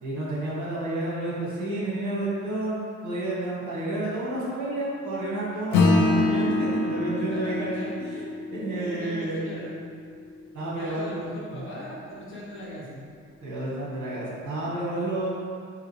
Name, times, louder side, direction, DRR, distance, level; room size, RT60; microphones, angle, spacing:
voice 1, 0.0-8.2 8.5-9.4 10.5-11.1 11.5-11.6 13.4-15.3, right 2 dB, 70° right, -6 dB, 1.5 m, -30 dB
Acoustic guitar / Strum, 5.7-10.5, left 2 dB, 90° left, 0.6 m, -26 dB
voice 2, 7.2-9.8 10.6-13.0, equal, 40° left, -6 dB, 1.3 m, -40 dB
4.9 x 2.9 x 3.2 m, 2.3 s
cardioid pair, 90°, 30 cm